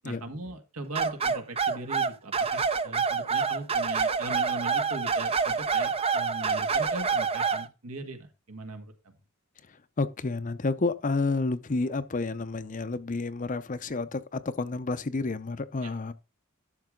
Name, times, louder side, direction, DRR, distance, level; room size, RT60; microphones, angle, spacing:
voice 1, 0.0-9.1 15.8-15.9, right 2 dB, 75° right, 1.8 m, -39 dB
sound 1, 0.9-7.7, right 5 dB, 25° right, 0.5 m, -27 dB
voice 2, 10.0-16.1, left 3 dB, 35° left, 0.6 m, -30 dB
12.0 x 6.5 x 3.8 m
head